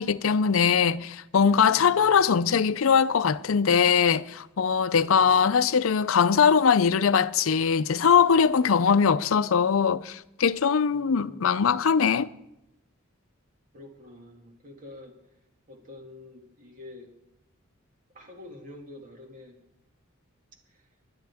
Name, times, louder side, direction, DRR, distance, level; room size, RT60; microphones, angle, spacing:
voice 1, 0.0-12.3, left 6 dB, 75° left, 0.5 m, -21 dB
voice 2, 1.7-2.3 5.0-5.5 10.9-11.6 13.7-15.2 15.7-17.1 18.1-19.6 20.7-20.9, left 2 dB, 40° right, 2.2 m, -47 dB
20.5 x 10.5 x 3.5 m
head